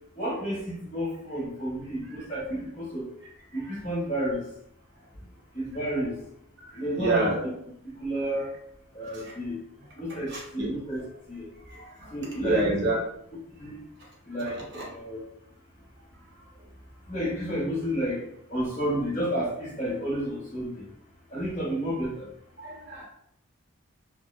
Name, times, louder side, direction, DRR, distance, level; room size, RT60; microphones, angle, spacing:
voice 1, 0.2-3.1 3.5-4.4 5.5-6.1 6.7-7.3 8.0-8.5 8.9-9.6 10.0-11.0 11.3-11.5 12.1-12.8 13.6-13.8 14.3-15.2 17.1-18.2 18.5-20.8 21.3-22.2, equal, 35° left, -7 dB, 1.0 m, -31 dB
voice 2, 6.6-7.5 9.1-9.3 10.1-10.7 11.7-13.0 14.3-14.9 16.4-16.5 22.6-23.0, right 2 dB, 55° right, -3 dB, 0.7 m, -30 dB
2.6 x 2.0 x 2.4 m, 0.73 s
head